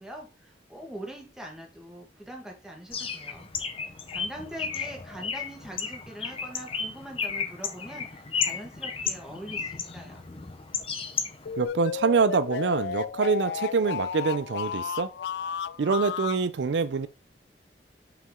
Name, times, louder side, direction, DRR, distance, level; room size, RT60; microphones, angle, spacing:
voice 1, 0.0-3.5 4.1-10.2, equal, 5° right, 1.5 m, -43 dB
Bird, 2.9-11.7, left 6 dB, 30° left, 0.8 m, -34 dB
sound 1, 11.5-16.4, left 7 dB, 70° left, 0.3 m, -33 dB
voice 2, 11.6-15.1 15.8-17.1, right 5 dB, 85° right, 0.4 m, -25 dB
5.7 x 4.9 x 3.7 m
head